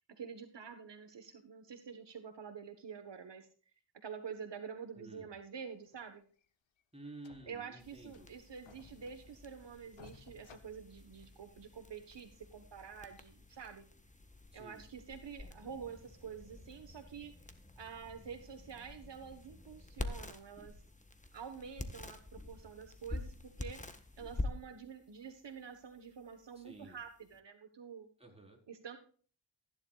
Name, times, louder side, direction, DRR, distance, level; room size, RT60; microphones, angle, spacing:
voice 1, 0.0-3.5 3.9-6.2 7.5-13.8 14.5-17.3 17.8-20.7 21.3-23.8 24.2-28.1 28.7-29.0, right 6 dB, 65° right, 8 dB, 1.3 m, -48 dB
voice 2, 5.0-5.3 6.9-8.3 14.5-14.8 26.6-27.0 28.2-28.6, right 2 dB, 15° right, 0 dB, 4.2 m, -52 dB
sound 1, 5.8-6.0 6.4-6.5 6.8-6.9 7.2-7.7 8.1-9.6 9.9-11.5 12.0-12.1 12.8-12.9, left 6 dB, 80° left, 1.1 m, -60 dB
sound 2, 7.8-27.4, left 2 dB, 15° left, 1.4 m, -48 dB
15.0 x 10.5 x 2.4 m, 0.42 s
cardioid pair, 75°, 46 cm